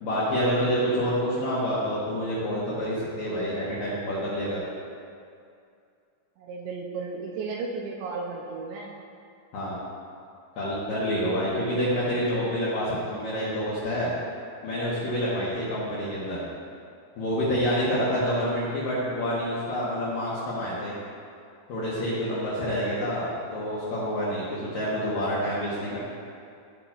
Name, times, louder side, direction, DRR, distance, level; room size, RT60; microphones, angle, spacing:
voice 1, 0.0-4.6 9.5-9.8 10.6-14.1 14.6-16.4 17.2-20.9 21.7-26.0, equal, 70° left, -9 dB, 2.2 m, -27 dB
voice 2, 6.4-8.9 24.6-24.7, right 4 dB, 80° right, -1 dB, 2.7 m, -34 dB
14.5 x 5.8 x 2.4 m, 2.4 s
omnidirectional pair, 5.5 m